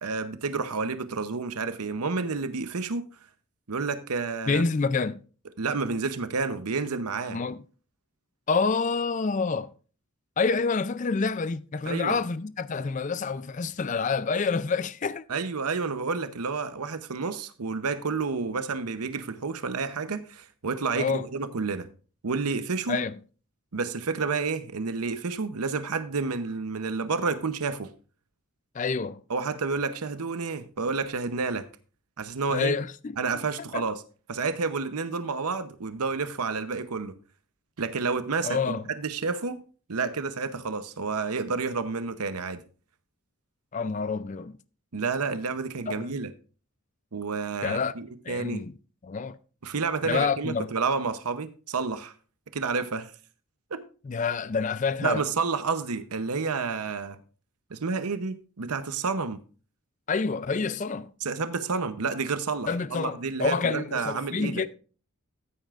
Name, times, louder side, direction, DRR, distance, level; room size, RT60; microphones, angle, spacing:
voice 1, 0.0-3.0 3.7-4.6 5.6-7.4 11.9-12.2 15.3-21.9 22.2-23.0 23.7-27.9 29.3-31.7 32.2-32.7 33.2-34.0 34.3-37.1 37.8-39.6 39.9-42.6 44.9-46.3 47.1-48.6 49.6-52.1 52.5-53.1 53.7-53.8 55.0-57.2 57.7-59.4 61.2-64.6, right 4 dB, 90° right, 0.8 m, -30 dB
voice 2, 4.5-5.2 7.3-7.6 8.5-9.7 10.4-15.2 20.9-21.3 22.9-23.2 28.7-29.2 32.5-33.2 33.7-33.8 38.4-38.8 43.7-44.6 45.9-46.1 47.6-47.9 48.3-48.7 49.0-49.4 50.0-50.7 54.0-55.3 60.1-61.1 62.7-64.7, left 4 dB, 35° left, 0.4 m, -28 dB
14.5 x 9.0 x 2.5 m
head